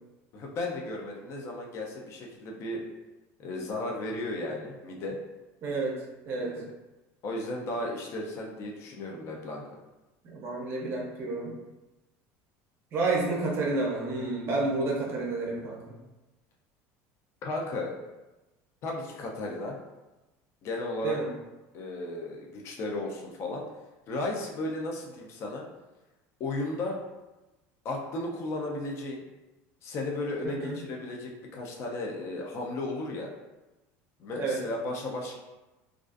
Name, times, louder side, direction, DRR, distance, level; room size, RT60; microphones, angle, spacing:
voice 1, 0.3-2.8 3.4-5.2 6.4-6.7 7.2-9.6 17.4-18.0 18.8-19.8 20.6-21.2 21.7-23.6 24.1-25.7 26.4-27.0 27.8-29.2 29.8-33.3 34.2-35.4, left 2 dB, 40° left, 0 dB, 0.4 m, -34 dB
voice 2, 5.6-6.0 6.3-6.6 10.2-11.5 12.9-16.0 21.0-21.3 30.4-30.8 34.3-34.6, right 3 dB, 40° right, -2 dB, 0.5 m, -30 dB
2.4 x 2.3 x 2.4 m, 1.1 s
cardioid pair, 145°, 7 cm